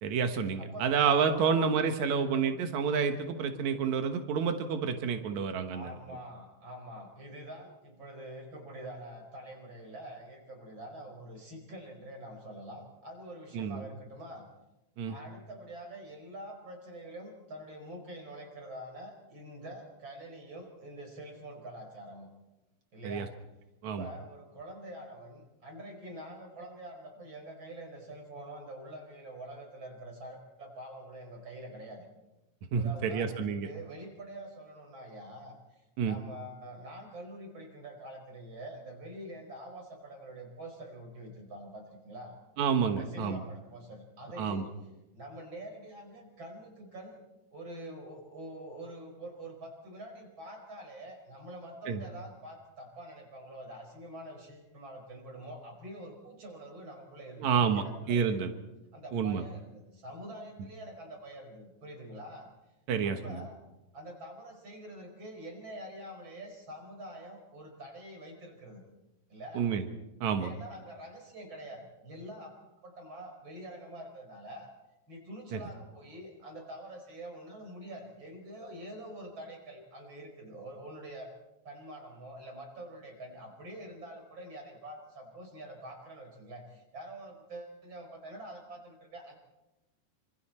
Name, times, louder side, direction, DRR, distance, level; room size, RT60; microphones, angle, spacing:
voice 1, 0.0-5.8 13.5-13.8 15.0-15.2 23.0-23.2 23.8-24.1 32.7-33.7 36.0-36.2 42.6-43.4 44.4-44.6 51.9-52.0 57.4-58.5 59.1-59.4 62.9-63.4 69.5-69.8 70.2-70.5 75.5-75.6, right 6 dB, 85° right, 6 dB, 1.6 m, -29 dB
voice 2, 0.6-0.9 1.3-1.6 5.7-14.5 15.1-22.3 22.9-23.3 23.8-32.0 32.7-42.4 42.9-44.9 45.1-47.2 47.5-58.5 58.9-62.5 63.0-63.6 63.9-68.8 69.3-69.7 70.4-74.7 75.1-81.3 81.6-89.3, right 1 dB, 25° right, 3 dB, 5.0 m, -46 dB
27.0 x 26.0 x 4.4 m, 0.99 s
omnidirectional pair, 5.3 m